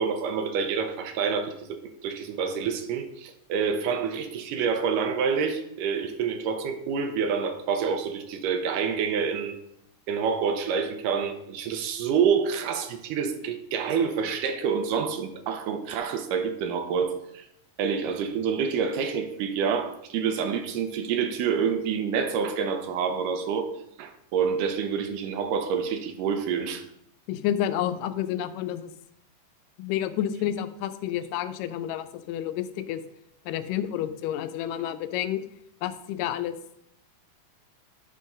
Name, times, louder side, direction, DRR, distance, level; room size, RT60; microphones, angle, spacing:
voice 1, 0.0-9.5 10.1-17.5 17.8-23.7 24.0-26.8, right 6 dB, 90° right, 7 dB, 2.3 m, -27 dB
voice 2, 27.3-28.9 29.8-33.0 33.5-35.4 35.8-36.5, left 11 dB, 90° left, 11 dB, 2.2 m, -30 dB
9.1 x 3.7 x 5.2 m, 0.78 s
omnidirectional pair, 3.7 m